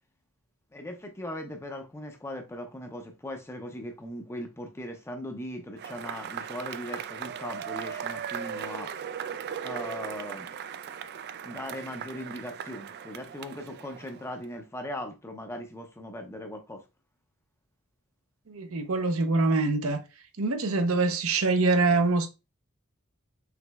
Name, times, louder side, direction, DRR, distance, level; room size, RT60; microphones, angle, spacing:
voice 1, 0.7-8.9 9.6-10.5 11.4-16.8, left 1 dB, 10° left, 0.6 m, -39 dB
Cheering / Applause / Crowd, 5.8-14.4, right 8 dB, 50° right, 0.3 m, -38 dB
voice 2, 18.5-20.0 20.4-22.3, right 3 dB, 70° right, 0.7 m, -24 dB
5.9 x 3.2 x 2.3 m
head